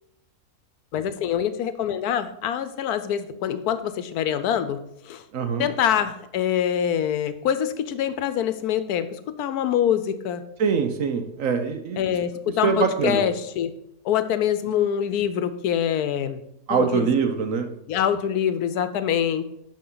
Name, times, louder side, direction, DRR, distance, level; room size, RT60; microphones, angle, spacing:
voice 1, 0.9-4.8 5.0-5.2 5.6-10.4 12.0-13.7 14.0-16.4 16.7-17.1 17.9-19.4, left 9 dB, 85° left, 12 dB, 1.2 m, -25 dB
voice 2, 5.3-5.7 10.6-12.2 12.6-13.2 16.7-17.7, right 5 dB, 65° right, 7 dB, 1.2 m, -23 dB
12.0 x 4.6 x 3.9 m, 0.78 s
omnidirectional pair, 1.6 m